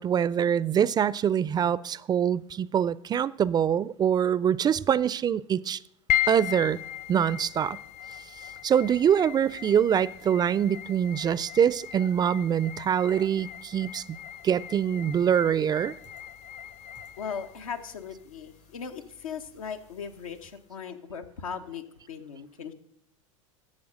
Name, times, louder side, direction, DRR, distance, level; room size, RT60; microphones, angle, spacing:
voice 1, 0.0-5.8 6.3-6.8 7.1-7.8 8.6-14.0 14.4-15.9, right 8 dB, 25° right, 0.3 m, -24 dB
sound 1, 6.1-20.6, left 12 dB, 40° left, 0.7 m, -37 dB
voice 2, 17.2-22.7, left 6 dB, 90° left, 1.0 m, -38 dB
11.5 x 7.4 x 6.3 m
hypercardioid pair, 95°, 17 cm